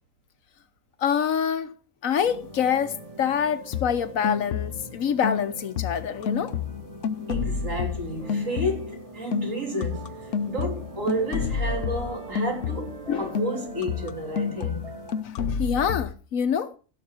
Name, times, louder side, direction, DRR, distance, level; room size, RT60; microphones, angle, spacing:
voice 1, 1.0-1.7 2.0-6.5 13.1-13.3 15.2-16.7, left 7 dB, 90° left, 1.4 m, -26 dB
sound 1, 2.2-15.2, right 2 dB, 25° right, 1.4 m, -43 dB
sound 2, 3.7-5.0 5.2-9.0 9.3-13.1 13.3-16.1, left 6 dB, 70° left, 1.1 m, -30 dB
voice 2, 7.3-10.2 10.5-14.9, right 1 dB, 75° right, 3.7 m, -31 dB
16.0 x 6.6 x 4.5 m
omnidirectional pair, 1.4 m